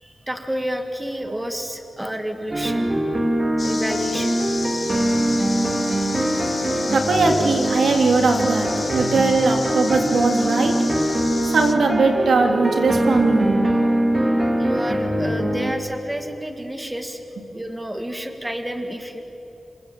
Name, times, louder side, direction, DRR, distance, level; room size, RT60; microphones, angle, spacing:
voice 1, 0.0-2.9 3.6-4.4 14.6-17.2 17.5-19.2, equal, 10° right, 6 dB, 1.8 m, -30 dB
sound 1, 2.5-15.7, right 1 dB, 25° right, 2.3 m, -22 dB
sound 2, 3.6-11.8, left 4 dB, 40° left, 1.3 m, -33 dB
voice 2, 6.9-10.8 11.5-13.7, right 3 dB, 90° right, 3 dB, 3.1 m, -20 dB
27.5 x 27.0 x 7.8 m, 3.0 s
wide cardioid pair, 150°, 0 cm